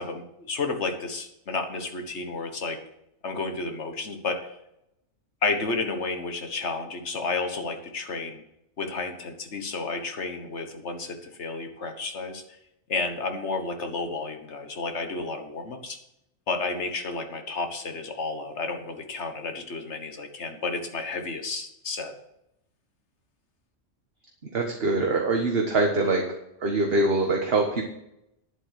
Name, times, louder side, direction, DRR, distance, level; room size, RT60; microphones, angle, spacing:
voice 1, 0.0-2.8 3.2-4.4 5.4-8.4 8.8-12.4 12.9-16.0 16.5-22.1, left 3 dB, 65° left, 6 dB, 1.7 m, -31 dB
voice 2, 24.4-26.2 26.6-27.8, right 2 dB, 50° right, 2 dB, 1.5 m, -24 dB
10.5 x 8.0 x 6.5 m, 0.82 s
omnidirectional pair, 1.3 m